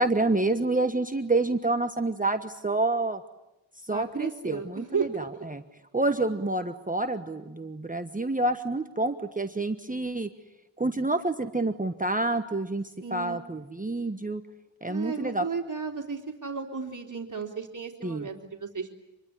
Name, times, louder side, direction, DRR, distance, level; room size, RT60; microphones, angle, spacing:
voice 1, 0.0-3.2 3.8-5.6 5.9-10.3 10.8-14.4 14.8-15.4 18.0-18.3, right 2 dB, 15° right, 7 dB, 1.2 m, -28 dB
voice 2, 3.9-5.4 13.0-13.4 14.9-19.0, right 5 dB, 40° right, 2 dB, 3.8 m, -34 dB
26.5 x 22.0 x 10.0 m, 0.90 s
wide cardioid pair, 75°, 46 cm